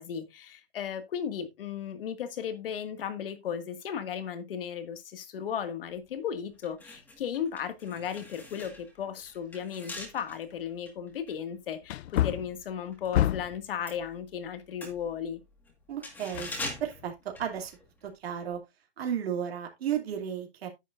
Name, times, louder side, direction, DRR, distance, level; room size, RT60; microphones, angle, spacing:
voice 1, 0.0-15.4, left 8 dB, 60° left, 2.0 m, -35 dB
sound 1, 6.0-6.1 6.5-13.2 13.4-18.1 18.4-18.5, left 2 dB, 5° left, 1.7 m, -44 dB
Wood, 9.8-9.9 10.5-10.6 11.8-13.7 16.3-17.1 17.5-17.6, left 13 dB, 85° left, 0.5 m, -29 dB
voice 2, 15.9-16.5 16.8-17.8 18.0-18.6 19.0-20.7, right 9 dB, 70° right, 2.6 m, -33 dB
9.9 x 9.4 x 2.5 m
hypercardioid pair, 175°, 32 cm